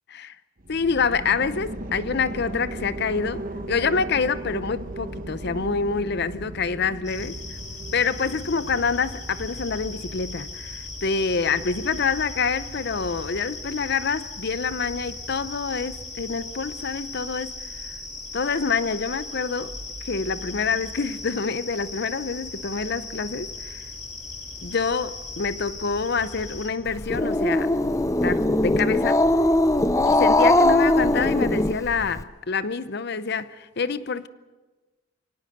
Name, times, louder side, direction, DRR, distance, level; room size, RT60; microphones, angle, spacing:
sound 1, 0.6-10.5, right 1 dB, 45° right, 1.1 m, -37 dB
voice 1, 0.7-7.6 7.9-17.5 17.8-17.9 18.3-19.7 20.0-23.8 24.6-27.8 28.1-29.2 30.2-34.3, left 5 dB, 55° left, 0.7 m, -27 dB
sound 2, 7.0-26.7, left 2 dB, 35° left, 7.9 m, -37 dB
Growling, 26.9-32.2, left 1 dB, 15° left, 0.6 m, -20 dB
24.0 x 18.0 x 6.6 m
head